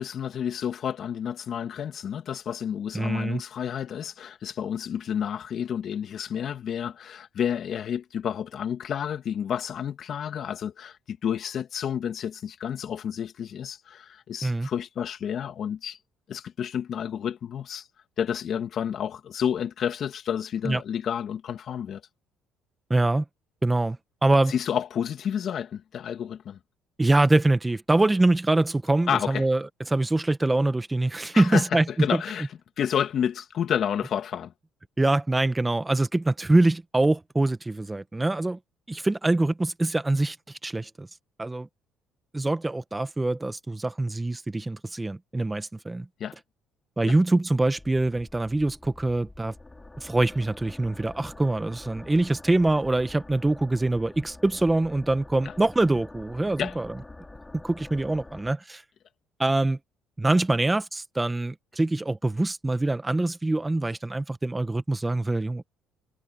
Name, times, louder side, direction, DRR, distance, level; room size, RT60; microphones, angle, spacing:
voice 1, 0.0-16.0 16.3-17.9 18.2-22.0 24.5-26.6 29.1-29.4 31.3-32.5 32.8-34.5 46.2-46.4 47.1-47.2 55.4-55.5 56.6-56.7, left 8 dB, 50° left, 2.4 m, -30 dB
voice 2, 2.9-3.4 14.4-14.7 20.6-20.8 22.9-23.2 23.6-24.5 27.0-31.8 32.1-32.2 35.0-38.6 38.9-41.1 41.4-41.7 42.3-46.1 47.0-49.5 50.0-56.9 57.5-58.8 59.4-59.8 60.2-65.6, right 2 dB, 10° right, 1.2 m, -24 dB
sound 1, 47.8-58.5, left 2 dB, 10° left, 3.7 m, -46 dB
cardioid pair, 120°, 0 cm